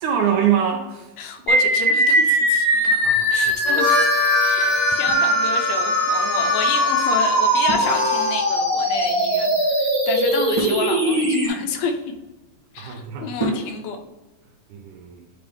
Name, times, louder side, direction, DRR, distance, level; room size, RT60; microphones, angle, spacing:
voice 1, 0.0-1.1 3.0-3.6 4.6-4.8 12.8-13.5 14.7-15.3, right 8 dB, 75° right, 2 dB, 1.9 m, -25 dB
voice 2, 1.2-3.0 3.3-4.0 4.4-11.9 12.7-14.0, left 6 dB, 85° left, 5 dB, 2.7 m, -30 dB
sound 1, 1.5-11.5, right 1 dB, 15° right, 1.6 m, -20 dB
Harmonica, 3.5-8.5, left 4 dB, 70° left, 1.8 m, -25 dB
sound 2, 5.1-6.0 7.7-8.6 10.5-12.5 13.4-14.1, right 1 dB, 20° left, 0.7 m, -32 dB
9.0 x 3.5 x 3.4 m, 1.1 s
omnidirectional pair, 4.1 m